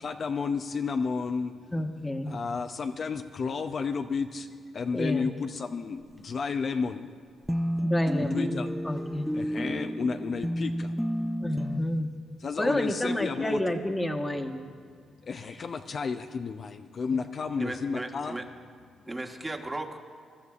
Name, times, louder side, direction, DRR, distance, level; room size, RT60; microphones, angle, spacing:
voice 1, 0.0-1.5 2.3-4.5 4.7-7.1 8.2-8.7 9.3-11.0 12.4-13.6 15.2-18.4, left 5 dB, 50° left, 6 dB, 0.5 m, -32 dB
voice 2, 1.7-2.3 4.9-5.3 7.8-8.6 8.8-9.3 11.4-12.1 12.6-14.6, left 1 dB, 15° left, 4 dB, 1.3 m, -29 dB
sound 1, 7.5-11.8, equal, ahead, 0.4 m, -31 dB
voice 3, 17.6-18.4 19.1-20.0, right 2 dB, 20° right, 2 dB, 1.4 m, -36 dB
21.5 x 12.0 x 2.4 m, 2.3 s
hypercardioid pair, 50°, 0 cm